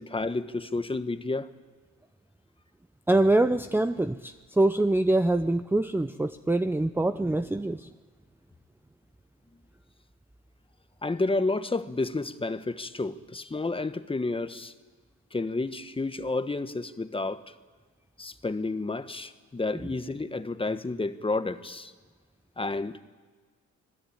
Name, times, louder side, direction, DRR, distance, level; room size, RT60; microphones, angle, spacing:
voice 1, 0.0-1.5 11.0-14.7 15.3-17.5 18.2-21.9 22.6-23.0, left 3 dB, 20° left, 11 dB, 1.3 m, -30 dB
voice 2, 3.1-7.9, right 2 dB, 5° right, 9 dB, 0.7 m, -24 dB
26.5 x 18.0 x 8.9 m, 1.4 s
cardioid pair, 90°, 30 cm